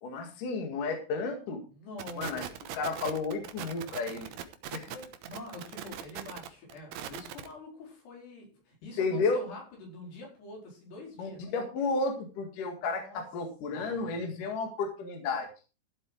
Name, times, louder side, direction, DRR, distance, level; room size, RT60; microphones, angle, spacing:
voice 1, 0.0-1.6 2.2-2.4 2.7-4.3 4.7-4.9 9.0-9.4 11.2-15.5, left 3 dB, 60° left, 3 dB, 3.2 m, -32 dB
voice 2, 1.7-2.4 4.8-11.5 12.8-13.2 13.7-14.3, left 2 dB, 80° left, -1 dB, 6.8 m, -46 dB
sound 1, 2.0-7.5, right 10 dB, 75° right, 2.9 m, -40 dB
14.5 x 8.0 x 4.7 m, 0.34 s
omnidirectional pair, 4.7 m